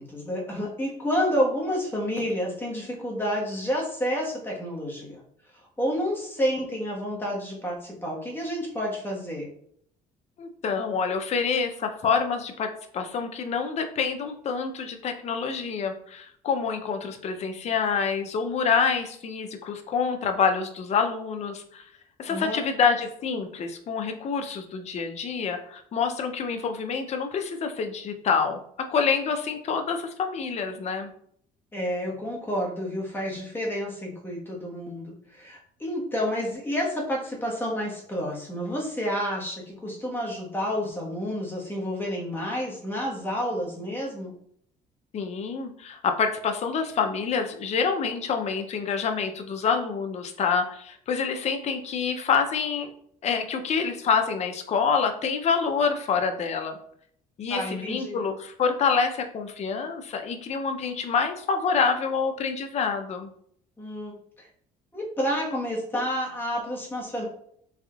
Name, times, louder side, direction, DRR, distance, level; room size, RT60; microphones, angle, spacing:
voice 1, 0.0-5.2 5.8-9.5 22.3-22.6 31.7-44.3 57.5-58.2 63.8-64.5 64.9-67.3, equal, 10° left, -3 dB, 1.2 m, -29 dB
voice 2, 10.4-21.9 22.2-28.6 28.9-31.1 45.1-52.9 53.2-56.8 57.4-63.3, left 5 dB, 40° left, 5 dB, 0.5 m, -27 dB
3.5 x 3.4 x 2.3 m, 0.64 s
cardioid pair, 110°, 17 cm